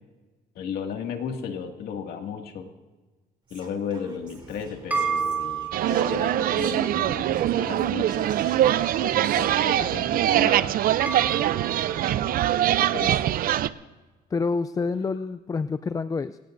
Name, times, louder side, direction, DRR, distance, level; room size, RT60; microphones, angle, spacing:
voice 1, 0.6-2.7 3.5-8.3 9.0-10.8 12.8-13.1, left 7 dB, 65° left, 3 dB, 2.2 m, -34 dB
Whispering, 3.5-7.0 7.3-9.5, right 3 dB, 30° right, 3.0 m, -50 dB
sound 1, 4.3-12.8, right 5 dB, 10° right, 3.2 m, -35 dB
sound 2, 5.7-13.7, right 12 dB, 60° right, 0.6 m, -23 dB
voice 2, 14.3-16.4, left 4 dB, 20° left, 12 dB, 0.4 m, -27 dB
26.5 x 18.0 x 2.6 m, 1.3 s
cardioid pair, 110°, 17 cm